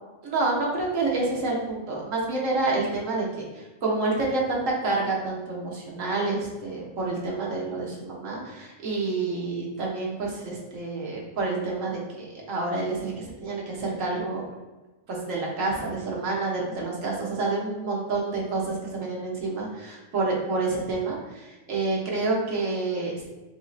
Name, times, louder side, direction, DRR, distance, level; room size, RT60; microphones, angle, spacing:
voice 1, 0.2-3.2 3.6-14.4 15.1-23.2, right 3 dB, 75° right, -3 dB, 1.4 m, -28 dB
6.2 x 2.7 x 2.4 m, 1.2 s
omnidirectional pair, 1.4 m